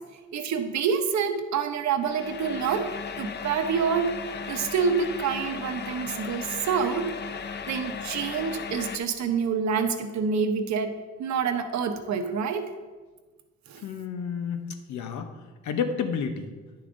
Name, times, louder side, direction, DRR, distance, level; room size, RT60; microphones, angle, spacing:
voice 1, 0.3-4.1 4.5-7.1 7.7-10.9 11.2-12.7 13.7-13.8, right 6 dB, 65° right, 7 dB, 0.8 m, -27 dB
sound 1, 2.0-9.0, left 6 dB, 35° left, 0.5 m, -36 dB
voice 2, 13.8-14.6 14.9-15.3 15.6-16.5, left 6 dB, 75° left, 7 dB, 0.8 m, -30 dB
9.8 x 6.8 x 2.6 m, 1.3 s
cardioid pair, 90°, 30 cm